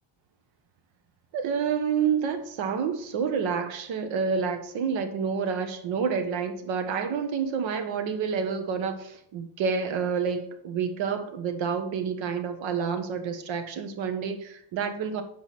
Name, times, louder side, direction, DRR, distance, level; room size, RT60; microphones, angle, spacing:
voice 1, 1.3-15.2, right 6 dB, 90° right, 7 dB, 1.2 m, -29 dB
8.0 x 5.0 x 4.1 m, 0.69 s
cardioid pair, 160°, 45 cm